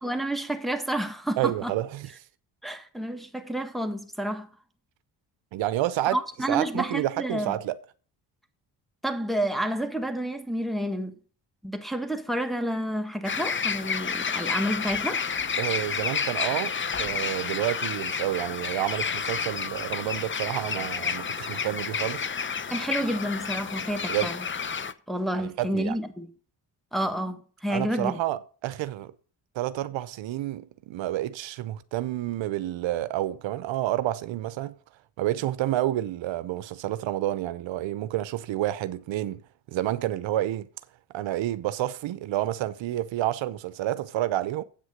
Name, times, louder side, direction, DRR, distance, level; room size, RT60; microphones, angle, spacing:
voice 1, 0.0-1.7 2.6-4.5 6.1-7.5 9.0-11.2 11.6-15.2 22.7-24.5 25.1-26.3 26.9-28.2, right 1 dB, ahead, 1.5 m, -30 dB
voice 2, 1.4-2.1 5.5-6.2 6.5-7.7 15.6-16.7 17.0-22.3 24.1-24.3 25.3-26.0 27.7-29.1 29.5-34.7 35.2-39.4 39.7-40.7 41.1-44.6, right 14 dB, 75° right, 0.7 m, -29 dB
sound 1, 13.2-24.9, left 6 dB, 25° left, 0.7 m, -30 dB
8.2 x 6.3 x 6.4 m
supercardioid pair, 65°, 46 cm